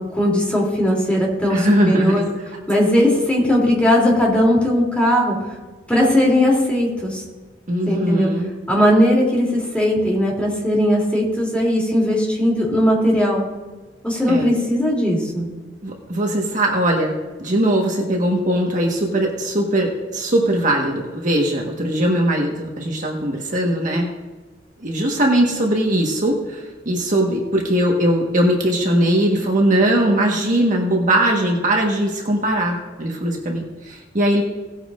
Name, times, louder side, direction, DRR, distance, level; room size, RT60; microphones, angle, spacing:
voice 1, 0.1-2.2 2.7-5.4 5.9-7.2 7.9-8.3 8.7-13.4 14.0-15.5, left 1 dB, 5° left, -3 dB, 3.0 m, -18 dB
voice 2, 1.5-2.2 7.7-8.5 14.3-14.5 15.8-24.1 24.8-34.4, right 1 dB, 45° right, 0 dB, 1.5 m, -20 dB
18.0 x 9.0 x 2.5 m, 1.3 s
head